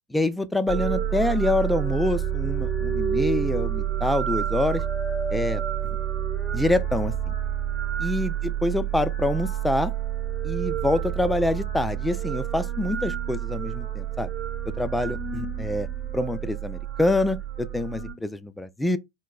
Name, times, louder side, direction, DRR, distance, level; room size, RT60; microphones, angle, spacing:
voice 1, 0.1-4.8 5.3-5.6 6.5-7.1 8.0-9.9 10.4-14.3 14.8-15.9 16.1-19.0, left 2 dB, 5° left, 0.3 m, -26 dB
sound 1, 0.7-18.1, right 9 dB, 20° right, 1.0 m, -29 dB
4.1 x 2.2 x 3.9 m
figure-of-eight pair, 90°, 0 cm